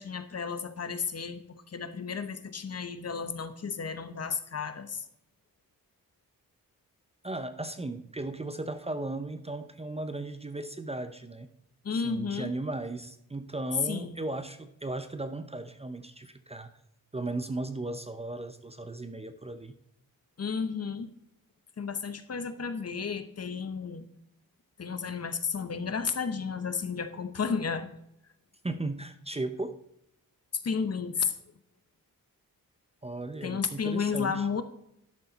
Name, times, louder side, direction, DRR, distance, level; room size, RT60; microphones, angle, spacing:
voice 1, 0.0-5.1 11.8-12.5 13.8-14.2 20.4-21.1 21.8-24.1 24.8-27.9 30.5-31.3 33.4-34.6, left 5 dB, 45° left, 10 dB, 0.9 m, -32 dB
voice 2, 7.2-11.5 11.9-16.7 17.1-19.7 28.6-29.7 33.0-34.5, right 2 dB, 15° right, 10 dB, 0.6 m, -36 dB
12.0 x 6.8 x 4.0 m, 0.80 s
wide cardioid pair, 115°, 36 cm